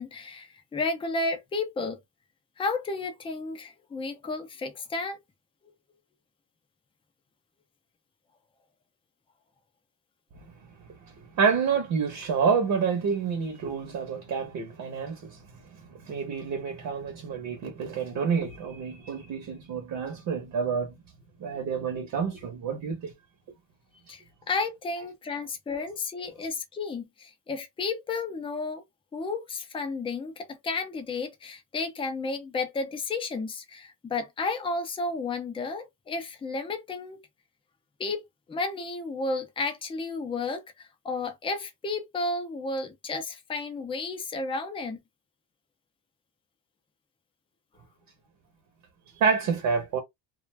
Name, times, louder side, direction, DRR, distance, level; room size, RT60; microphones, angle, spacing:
voice 1, 0.0-2.0 2.6-5.2 24.1-28.8 29.1-37.2 38.0-38.2 38.5-45.0, left 3 dB, 10° left, 0.4 m, -32 dB
voice 2, 10.8-15.4 15.7-20.9 21.4-23.1 24.1-24.2 49.2-50.0, right 6 dB, 50° right, 0.8 m, -28 dB
2.4 x 2.2 x 3.2 m
cardioid pair, 155°, 46 cm